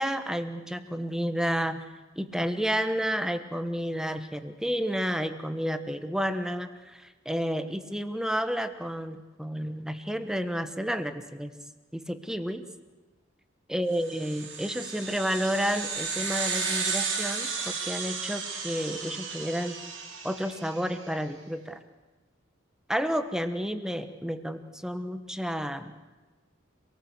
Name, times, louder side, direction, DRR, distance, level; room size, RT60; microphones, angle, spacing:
voice 1, 0.0-1.8 2.2-11.5 11.9-12.6 13.7-19.8 20.2-21.8 22.9-26.0, equal, 5° right, 9 dB, 1.2 m, -31 dB
sound 1, 14.0-20.9, right 5 dB, 80° right, 5.5 m, -33 dB
26.0 x 18.5 x 8.1 m, 1.2 s
head